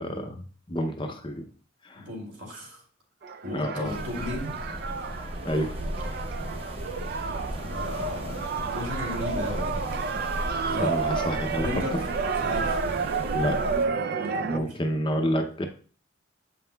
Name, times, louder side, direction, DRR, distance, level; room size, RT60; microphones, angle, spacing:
voice 1, 0.0-1.5 1.8-2.0 3.5-3.9 5.5-5.8 10.8-11.7 13.3-13.6 14.5-15.7, equal, 25° left, 5 dB, 0.5 m, -29 dB
voice 2, 2.0-2.8 3.4-4.6 7.5-10.0 10.7-10.9 11.6-12.8 14.2-14.8, left 1 dB, 75° right, -2 dB, 2.4 m, -36 dB
sound 1, 3.2-14.6, right 5 dB, 50° right, 0.3 m, -31 dB
sound 2, 3.8-13.9, equal, 30° right, 0.8 m, -36 dB
7.7 x 5.5 x 2.2 m, 0.41 s
head